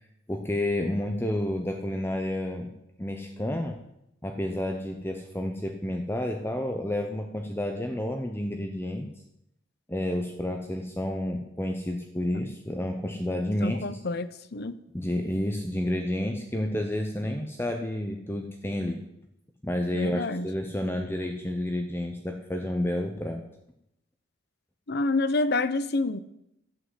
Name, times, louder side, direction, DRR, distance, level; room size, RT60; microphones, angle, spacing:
voice 1, 0.3-2.7 3.0-3.8 4.2-9.1 9.9-14.0 14.9-19.0 19.6-23.4, left 1 dB, 10° left, 4 dB, 0.9 m, -30 dB
voice 2, 13.6-14.8 19.9-20.5 24.9-26.2, left 2 dB, 60° left, 14 dB, 0.8 m, -28 dB
11.5 x 8.7 x 7.9 m, 0.82 s
head